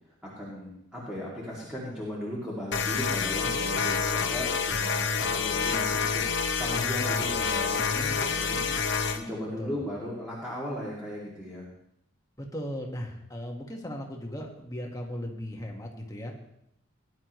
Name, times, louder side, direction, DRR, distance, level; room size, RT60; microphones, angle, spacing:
voice 1, 0.2-8.7 9.1-11.7, equal, 5° right, -7 dB, 2.5 m, -37 dB
sound 1, 2.7-9.2, left 5 dB, 55° left, 1.0 m, -28 dB
voice 2, 12.4-16.3, equal, 15° left, 0 dB, 1.7 m, -37 dB
19.5 x 11.0 x 3.2 m, 0.76 s
head